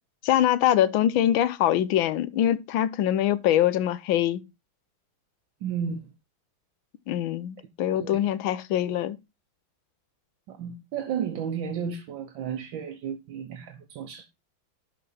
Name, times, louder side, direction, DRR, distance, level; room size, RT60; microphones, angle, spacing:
voice 1, 0.2-4.4 7.1-9.2, left 11 dB, 80° left, 1.5 m, -23 dB
voice 2, 5.6-6.1 8.0-8.3 10.5-14.3, right 7 dB, 75° right, 1.6 m, -33 dB
11.5 x 4.3 x 4.1 m
omnidirectional pair, 2.2 m